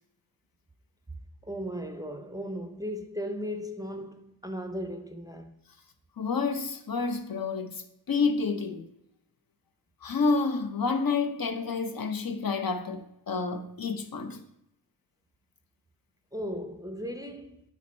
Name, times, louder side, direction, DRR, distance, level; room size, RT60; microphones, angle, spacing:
voice 1, 1.4-5.5 16.3-17.6, equal, 10° right, 0.5 m, -36 dB
voice 2, 6.2-8.9 10.0-14.4, left 4 dB, 60° left, 0.6 m, -29 dB
7.4 x 4.4 x 4.1 m
wide cardioid pair, 75°, 40 cm